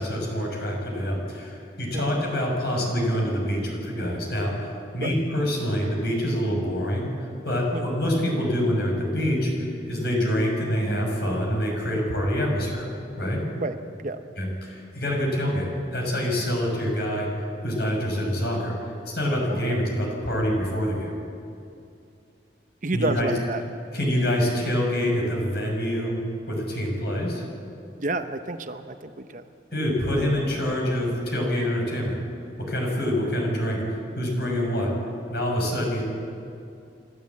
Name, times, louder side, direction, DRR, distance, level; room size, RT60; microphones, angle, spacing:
voice 1, 0.0-7.1 7.4-12.9 13.2-13.4 14.4-17.3 17.6-21.1 22.9-23.3 23.9-26.2 26.5-27.4 29.7-32.2 32.6-34.9 35.3-36.0, equal, 60° left, -1 dB, 6.2 m, -26 dB
voice 2, 22.8-23.6 28.0-29.4, right 2 dB, 45° right, 9 dB, 0.8 m, -30 dB
28.0 x 12.5 x 8.4 m, 2.6 s
head